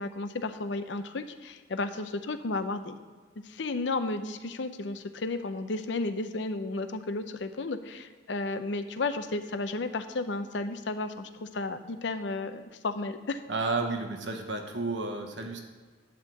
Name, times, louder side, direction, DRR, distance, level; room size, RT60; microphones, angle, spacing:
voice 1, 0.0-2.9 3.4-13.4, left 3 dB, 75° left, 9 dB, 0.6 m, -33 dB
voice 2, 13.5-15.6, right 3 dB, 75° right, 4 dB, 1.2 m, -31 dB
11.0 x 3.7 x 7.5 m, 1.5 s
head